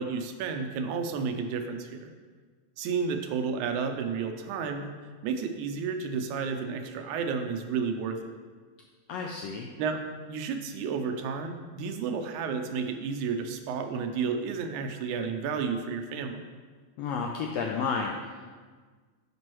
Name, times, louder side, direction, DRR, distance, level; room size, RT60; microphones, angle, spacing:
voice 1, 0.0-2.1 2.8-4.9 5.2-8.2 9.8-10.0 10.3-16.5, right 5 dB, 85° right, 5 dB, 2.0 m, -31 dB
voice 2, 9.1-9.7 17.0-18.5, left 5 dB, 90° left, 1 dB, 1.4 m, -31 dB
9.1 x 5.3 x 3.1 m, 1.5 s
omnidirectional pair, 3.5 m